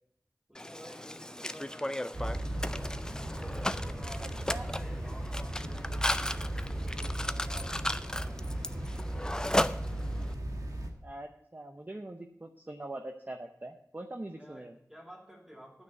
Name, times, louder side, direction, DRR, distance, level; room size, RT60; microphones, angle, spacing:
Mechanisms, 0.5-10.3, left 1 dB, 10° left, 0.4 m, -35 dB
voice 1, 0.5-2.3 3.2-9.1 14.3-15.8, equal, 5° right, -1 dB, 2.6 m, -52 dB
sound 1, 2.1-10.9, right 1 dB, 75° right, 1.6 m, -36 dB
voice 2, 4.2-4.7 11.0-14.7, right 1 dB, 30° right, 4 dB, 0.7 m, -43 dB
9.5 x 6.2 x 7.9 m, 0.72 s
wide cardioid pair, 65°, 6 cm